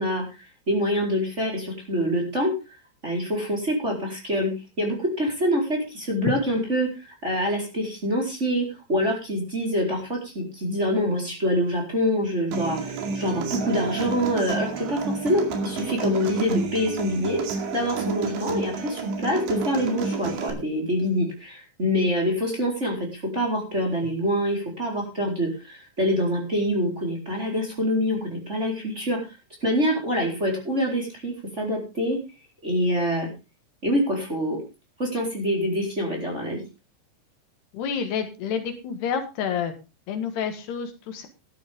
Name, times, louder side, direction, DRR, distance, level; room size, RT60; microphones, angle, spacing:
voice 1, 0.0-2.5 3.0-4.5 4.8-17.4 17.7-29.3 29.6-32.2 32.6-33.3 33.8-34.6 35.0-36.6, equal, 15° right, -1 dB, 4.0 m, -25 dB
Human voice / Acoustic guitar, 12.5-20.5, right 4 dB, 85° right, 4.7 m, -30 dB
voice 2, 37.7-39.7 40.1-41.3, left 7 dB, 70° left, 7 dB, 3.4 m, -29 dB
14.5 x 12.0 x 3.6 m, 0.28 s
omnidirectional pair, 5.0 m